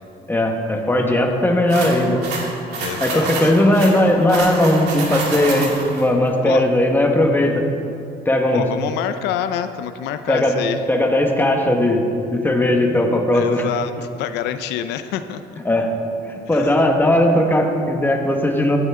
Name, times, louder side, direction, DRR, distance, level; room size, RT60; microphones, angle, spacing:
voice 1, 0.3-2.2 3.0-7.6 8.2-8.7 10.3-10.6 10.9-12.0 12.3-13.6 15.6-15.9 16.5-18.8, left 1 dB, 10° left, 2 dB, 1.4 m, -17 dB
sound 1, 1.7-6.0, right 3 dB, 80° right, 2.5 m, -28 dB
voice 2, 2.8-3.5 6.4-6.7 8.5-10.8 13.3-13.9 14.2-15.4 16.5-16.7, left 10 dB, 85° left, 10 dB, 0.5 m, -26 dB
14.5 x 9.3 x 3.7 m, 2.6 s
cardioid pair, 105°, 17 cm